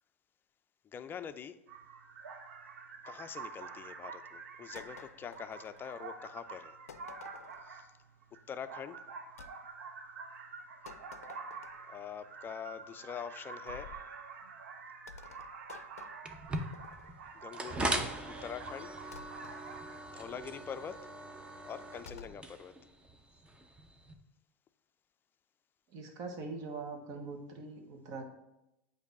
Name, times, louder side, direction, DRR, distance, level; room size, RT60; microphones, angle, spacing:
voice 1, 0.8-1.6 3.0-6.8 7.6-7.9 8.5-9.0 11.9-14.1 17.3-19.0 20.1-21.1 21.6-22.8, left 7 dB, 25° left, 11 dB, 0.4 m, -44 dB
sound 1, 1.7-20.0, right 5 dB, 75° right, 0.7 m, -48 dB
sound 2, 4.8-6.2 6.9-7.7 9.4-9.6 10.9-12.0 13.7-14.1 15.1-17.2 19.1-19.6 22.1-22.4, left 6 dB, 85° left, 0.4 m, -52 dB
sound 3, 16.2-24.1, right 2 dB, 15° right, 0.7 m, -40 dB
voice 2, 25.9-28.2, right 3 dB, 50° right, 4 dB, 1.2 m, -42 dB
8.0 x 2.7 x 5.2 m, 0.89 s
hypercardioid pair, 95°, 8 cm